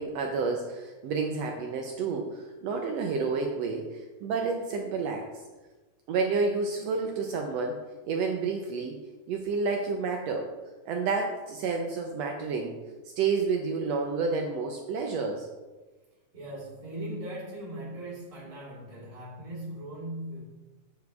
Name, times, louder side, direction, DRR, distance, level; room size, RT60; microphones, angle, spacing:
voice 1, 0.0-5.3 6.1-7.8 8.0-9.0 9.3-10.5 10.9-12.7 13.2-15.5, right 4 dB, 75° right, 2 dB, 1.6 m, -30 dB
voice 2, 16.3-20.4, right 1 dB, 30° right, -7 dB, 3.0 m, -39 dB
7.8 x 7.0 x 3.5 m, 1.2 s
omnidirectional pair, 3.5 m